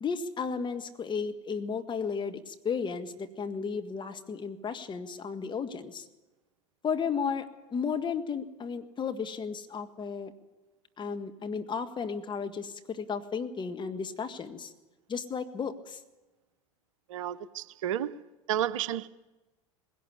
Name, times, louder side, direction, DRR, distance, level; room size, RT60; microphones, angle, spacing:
voice 1, 0.0-6.1 6.8-7.5 7.7-10.3 11.0-14.7 15.1-16.0, left 6 dB, 25° left, 1.7 m, -34 dB
voice 2, 17.1-18.2 18.5-19.1, right 11 dB, 70° right, 0.7 m, -31 dB
20.0 x 17.5 x 8.4 m
hypercardioid pair, 80°, 17 cm